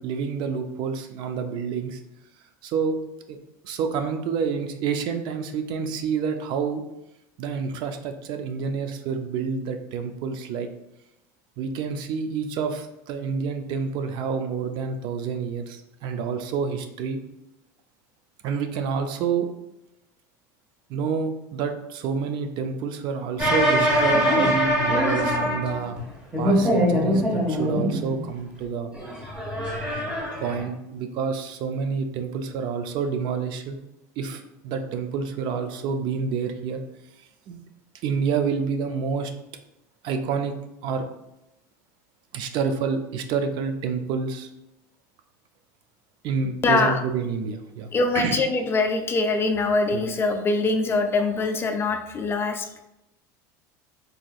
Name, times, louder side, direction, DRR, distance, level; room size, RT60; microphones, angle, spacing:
voice 1, 0.0-2.0 2.6-3.0 3.3-3.4 3.6-6.8 7.4-10.7 11.6-17.2 18.4-19.5 20.9-26.0 26.4-28.9 30.4-33.8 34.2-36.8 37.5-37.6 38.0-39.3 40.0-40.5 40.8-41.0 42.3-44.5 46.2-48.4 49.9-50.1, right 6 dB, 55° right, 7 dB, 0.4 m, -28 dB
sound 1, 23.4-26.0 26.3-28.1 28.9-30.6, equal, 15° right, 1.2 m, -23 dB
voice 2, 46.6-47.0 47.9-52.8, left 3 dB, 25° left, 6 dB, 0.3 m, -23 dB
4.0 x 2.5 x 2.3 m, 0.88 s
supercardioid pair, 110°, 9 cm